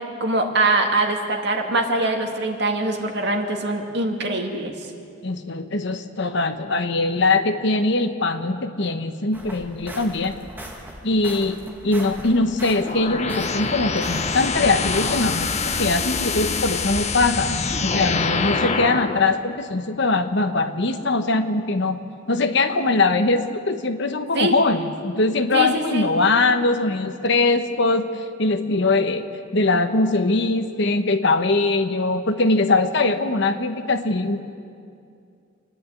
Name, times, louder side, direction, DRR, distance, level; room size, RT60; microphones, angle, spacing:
voice 1, 0.2-4.7 24.3-24.5 25.5-26.1, right 2 dB, 55° right, 2 dB, 2.2 m, -23 dB
voice 2, 5.2-10.3 11.0-11.6 11.8-22.0 22.3-29.3 29.5-34.4, left 3 dB, 60° left, 8 dB, 1.1 m, -21 dB
sound 1, 9.3-15.7, right 1 dB, 10° right, 2.1 m, -39 dB
sound 2, 12.8-19.2, left 4 dB, 35° left, 0.9 m, -25 dB
28.5 x 10.5 x 8.6 m, 2.4 s
head